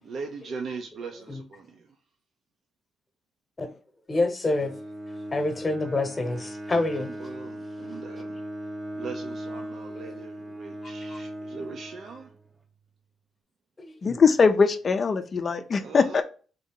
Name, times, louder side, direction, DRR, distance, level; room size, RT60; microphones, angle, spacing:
voice 1, 0.0-2.0 7.0-8.4 8.9-12.3 15.8-16.2, right 4 dB, 60° right, 0.6 m, -40 dB
voice 2, 4.1-4.7 5.3-7.1 10.1-10.2 13.8-14.2, left 2 dB, 25° left, 1.0 m, -27 dB
Bowed string instrument, 4.5-12.7, equal, 20° right, 0.7 m, -38 dB
voice 3, 14.0-16.2, left 5 dB, 40° left, 0.5 m, -21 dB
3.8 x 2.7 x 3.7 m
cardioid pair, 90°, 0 cm